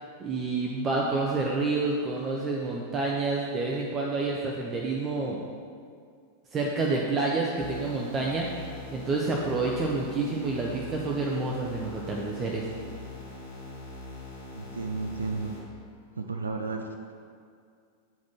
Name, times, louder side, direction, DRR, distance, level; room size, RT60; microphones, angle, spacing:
voice 1, 0.2-5.4 6.5-12.7, right 3 dB, 25° right, -2 dB, 0.6 m, -29 dB
sound 1, 7.6-15.6, left 2 dB, 65° left, 1.4 m, -42 dB
voice 2, 14.5-15.5 16.2-16.8, right 4 dB, 75° right, 5 dB, 0.3 m, -32 dB
8.3 x 4.1 x 3.0 m, 2.2 s
figure-of-eight pair, 90°, 0 cm